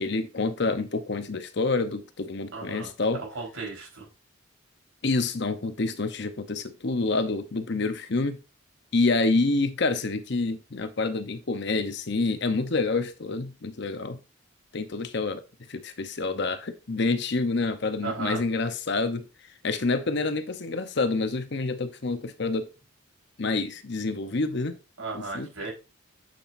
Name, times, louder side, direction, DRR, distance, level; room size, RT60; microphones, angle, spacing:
voice 1, 0.0-3.2 5.0-8.4 8.9-14.2 14.7-15.4 15.7-19.3 19.6-22.7 23.4-24.8 25.1-25.5, left 3 dB, 55° left, 0.7 m, -27 dB
voice 2, 2.5-2.9 3.3-4.0 18.0-18.4 25.0-25.7, right 4 dB, 75° right, 4.2 m, -35 dB
7.6 x 7.1 x 2.6 m
head